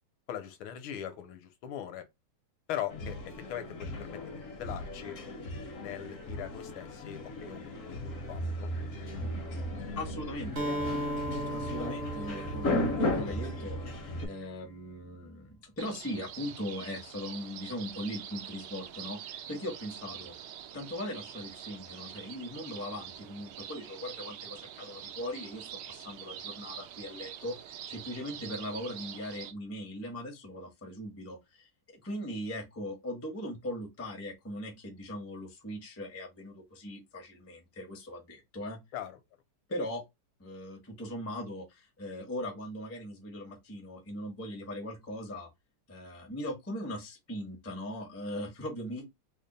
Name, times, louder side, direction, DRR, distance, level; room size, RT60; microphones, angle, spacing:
voice 1, 0.3-2.0 2.7-5.2 5.8-8.7 38.9-39.2, left 10 dB, 75° left, 1.5 m, -41 dB
sound 1, 2.9-14.3, left 1 dB, 55° left, 0.9 m, -36 dB
voice 2, 10.0-10.7 11.5-13.8 14.2-20.3 20.7-27.5 27.9-31.7 32.0-38.8 39.7-40.0 40.4-45.5 45.9-49.0, left 1 dB, 15° left, 0.4 m, -39 dB
Acoustic guitar, 10.6-14.4, right 1 dB, 50° right, 0.7 m, -37 dB
sound 2, 15.8-29.5, right 10 dB, 75° right, 1.0 m, -45 dB
3.5 x 2.1 x 3.9 m
omnidirectional pair, 2.4 m